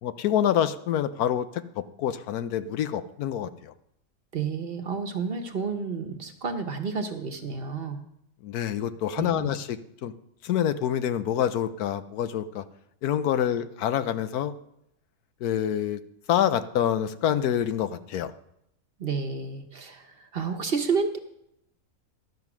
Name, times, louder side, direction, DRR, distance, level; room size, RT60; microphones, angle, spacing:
voice 1, 0.0-1.5 1.8-3.7 8.4-10.1 10.4-12.6 13.0-14.5 15.4-16.0 16.3-18.3, left 10 dB, 85° left, 12 dB, 1.2 m, -26 dB
voice 2, 4.3-8.0 9.2-9.5 19.0-21.2, right 5 dB, 45° right, 7 dB, 1.0 m, -30 dB
12.0 x 7.0 x 6.0 m, 0.77 s
omnidirectional pair, 1.6 m